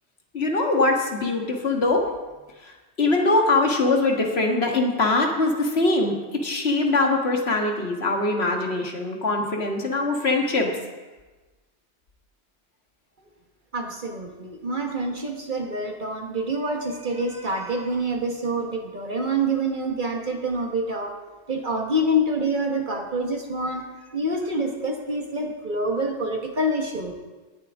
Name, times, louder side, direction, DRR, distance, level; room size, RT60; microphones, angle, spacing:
voice 1, 0.3-2.0 2.6-6.2 6.4-10.7, left 2 dB, 65° left, 1 dB, 1.9 m, -22 dB
voice 2, 13.7-21.1 21.5-23.9 24.1-27.1, right 1 dB, 45° right, 2 dB, 1.5 m, -26 dB
18.0 x 11.0 x 3.6 m, 1.2 s
omnidirectional pair, 1.1 m